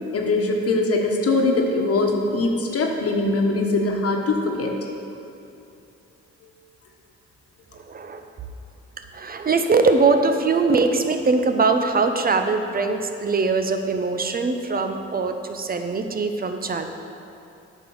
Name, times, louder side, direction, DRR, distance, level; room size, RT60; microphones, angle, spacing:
voice 1, 0.1-4.7, left 2 dB, 50° left, 1 dB, 1.3 m, -22 dB
voice 2, 7.7-8.3 9.0-16.9, right 4 dB, 30° right, 7 dB, 0.7 m, -22 dB
8.4 x 5.3 x 7.0 m, 2.7 s
cardioid pair, 90°, 30 cm